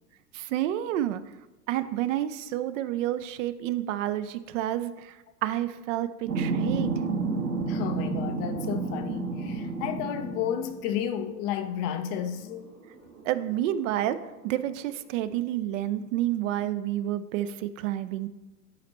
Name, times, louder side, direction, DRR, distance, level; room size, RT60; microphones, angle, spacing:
voice 1, 0.3-1.2 1.7-5.1 5.4-6.9 13.2-14.2 14.4-18.3, right 13 dB, 55° right, 0.5 m, -29 dB
sound 1, 6.3-10.7 12.0-12.2 12.5-14.6, right 4 dB, 80° right, 1.8 m, -31 dB
voice 2, 7.7-12.7, left 9 dB, 35° left, 0.4 m, -32 dB
11.0 x 4.1 x 3.0 m
hypercardioid pair, 90°, 47 cm